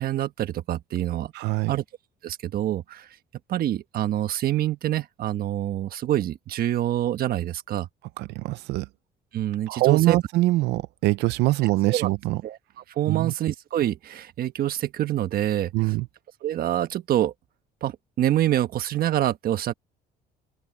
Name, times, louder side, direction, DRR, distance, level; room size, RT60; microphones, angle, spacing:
voice 1, 0.0-1.3 1.7-1.8 2.2-3.1 3.5-7.9 9.3-10.2 11.9-12.1 12.4-12.6 13.0-15.7 16.4-17.3 17.8-19.7, right 12 dB, 60° right, 1.4 m, -26 dB
voice 2, 1.3-1.8 8.2-8.9 9.7-12.4 13.1-13.3 15.7-16.1, right 18 dB, 85° right, 0.6 m, -23 dB
open air
cardioid pair, 110°, 17 cm